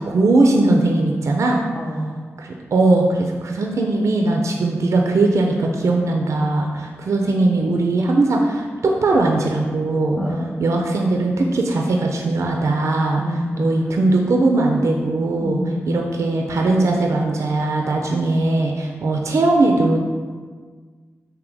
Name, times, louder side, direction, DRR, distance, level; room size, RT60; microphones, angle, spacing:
voice 1, 0.0-1.6 2.4-10.2 10.6-13.2 13.6-15.6 15.9-20.0, right 2 dB, 65° right, 1 dB, 0.4 m, -19 dB
voice 2, 1.7-2.2 10.2-10.6 13.2-13.7 15.4-16.0, equal, 20° left, -6 dB, 0.7 m, -27 dB
3.4 x 2.7 x 3.8 m, 1.5 s
cardioid pair, 50°, 5 cm